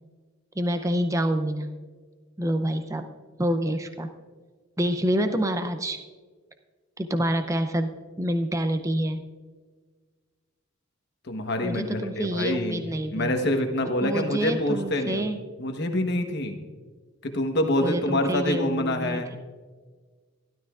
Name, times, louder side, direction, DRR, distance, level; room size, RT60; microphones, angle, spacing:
voice 1, 0.6-1.7 2.4-3.1 3.4-4.1 4.8-6.0 7.0-9.2 11.6-13.3 14.0-15.4 17.8-19.4, equal, 15° right, 8 dB, 0.5 m, -27 dB
voice 2, 11.2-12.8 13.1-15.2 15.6-16.6 17.2-19.3, left 1 dB, 50° left, 5 dB, 1.1 m, -26 dB
16.0 x 12.0 x 2.4 m, 1.4 s
head